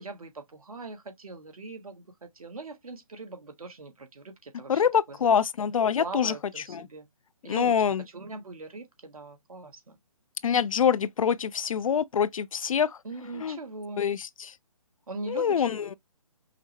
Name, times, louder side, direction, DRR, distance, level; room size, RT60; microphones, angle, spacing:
voice 1, 0.0-5.3 6.0-7.1 7.4-10.0 13.0-14.0 15.1-15.8, right 3 dB, 75° right, 1.3 m, -41 dB
voice 2, 4.7-6.3 6.7-6.9 7.5-8.0 10.4-13.0 13.3-13.6 14.0-14.5 15.3-16.0, left 7 dB, 65° left, 0.4 m, -25 dB
5.6 x 2.0 x 3.0 m
figure-of-eight pair, 145°, 19 cm